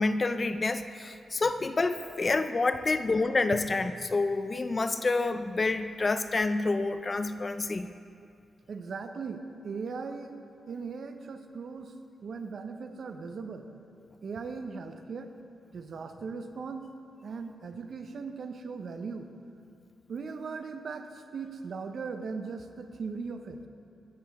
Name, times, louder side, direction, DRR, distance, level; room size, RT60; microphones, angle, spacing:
voice 1, 0.0-7.9, left 3 dB, 30° left, 10 dB, 0.3 m, -28 dB
voice 2, 8.7-10.3 10.7-11.9 12.2-13.7 14.2-15.3 15.7-16.9 17.2-19.3 20.1-23.6, right 5 dB, 55° right, 7 dB, 0.6 m, -38 dB
15.0 x 6.6 x 3.5 m, 2.4 s
wide cardioid pair, 130°, 0 cm